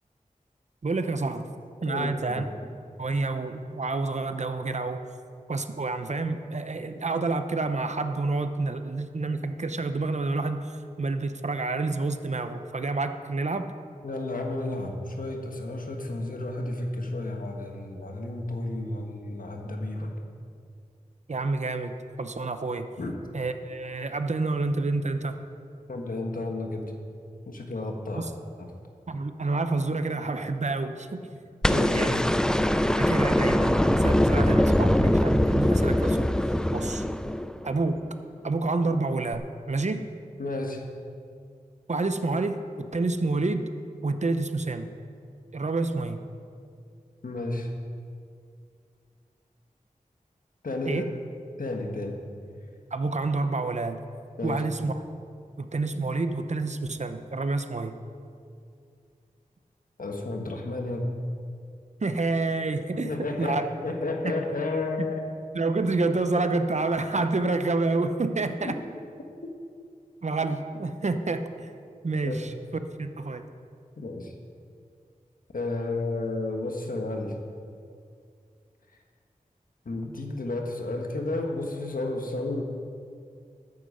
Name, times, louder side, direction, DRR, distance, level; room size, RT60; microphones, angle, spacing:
voice 1, 0.8-1.5 1.8-2.4 3.0-5.0 5.5-13.7 21.3-22.9 23.3-25.4 28.1-28.3 29.1-31.3 31.7-32.2 33.0-36.3 36.7-37.0 37.6-38.0 38.4-40.0 41.9-43.7 44.0-44.9 45.5-46.2 50.9-51.1 52.9-54.0 54.4-55.0 55.6-58.0 62.0-63.6 64.2-64.3 65.5-68.8 70.2-71.7 72.0-73.4, right 3 dB, 55° right, 8 dB, 0.8 m, -28 dB
voice 2, 1.8-2.4 14.0-20.1 23.0-23.2 25.9-26.9 27.5-28.3 28.6-28.7 31.7-32.3 40.4-40.9 47.2-47.7 50.6-51.1 51.6-52.2 54.4-54.6 60.0-61.2 62.9-65.3 68.6-68.7 69.4-69.5 72.2-72.4 74.0-74.3 75.5-77.4 79.8-82.6, left 2 dB, 80° left, 2 dB, 1.4 m, -32 dB
sound 1, 31.6-37.8 39.3-39.4, left 1 dB, 5° left, 0.4 m, -22 dB
13.5 x 9.5 x 5.1 m, 2.3 s
wide cardioid pair, 75°, 14 cm